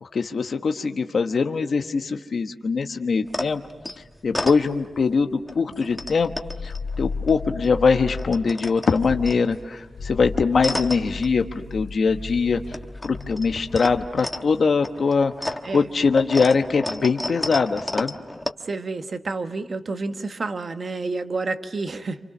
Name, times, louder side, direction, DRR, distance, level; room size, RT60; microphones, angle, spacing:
voice 1, 0.0-3.6 4.0-6.3 6.6-12.6 13.0-18.2, left 5 dB, 50° left, 5 dB, 1.1 m, -22 dB
sound 1, 3.3-5.1 5.5-7.7 8.0-11.9 12.2-18.5, left 1 dB, 10° left, 1.2 m, -33 dB
sound 2, 5.9-8.6 8.9-9.4 9.9-14.1, left 4 dB, 75° left, 2.4 m, -35 dB
voice 2, 18.6-22.2, right 3 dB, 40° right, 8 dB, 1.3 m, -29 dB
28.5 x 28.0 x 6.1 m, 1.2 s
wide cardioid pair, 165°, 0 cm